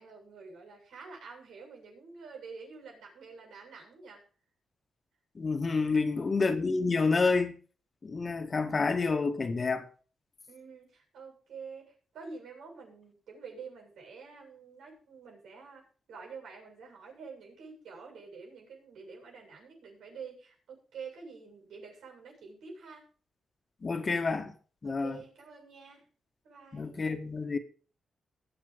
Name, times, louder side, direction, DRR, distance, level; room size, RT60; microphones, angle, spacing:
voice 1, 0.0-4.2 5.8-6.4 10.5-23.1 24.8-26.1 26.4-27.1, right 5 dB, 90° right, 7.8 m, -48 dB
voice 2, 5.4-7.5 8.0-9.8 23.8-24.5 24.8-25.2 26.7-27.6, left 4 dB, 40° left, 1.7 m, -28 dB
20.5 x 7.1 x 5.2 m
cardioid pair, 90°, 0 cm